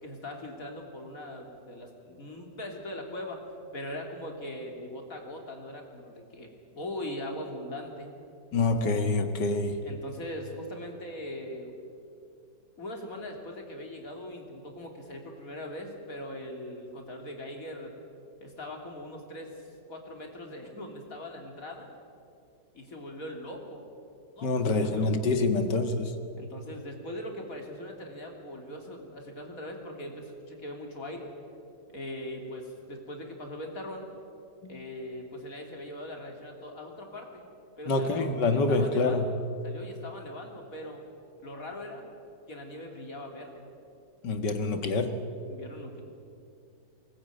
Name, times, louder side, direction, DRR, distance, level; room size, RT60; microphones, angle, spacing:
voice 1, 0.0-3.4 3.7-8.1 9.8-11.7 12.8-17.9 18.4-21.9 22.7-23.9 24.4-25.1 26.4-31.3 31.9-34.1 34.7-37.4 37.8-39.3 39.6-41.0 41.4-42.1 42.5-43.6 45.5-46.0, left 1 dB, 50° left, 2 dB, 3.5 m, -41 dB
voice 2, 8.5-9.8 24.4-26.1 34.6-34.8 37.9-39.3 44.2-45.3, left 3 dB, 75° left, 8 dB, 2.3 m, -26 dB
23.0 x 19.5 x 9.4 m, 2.6 s
omnidirectional pair, 1.9 m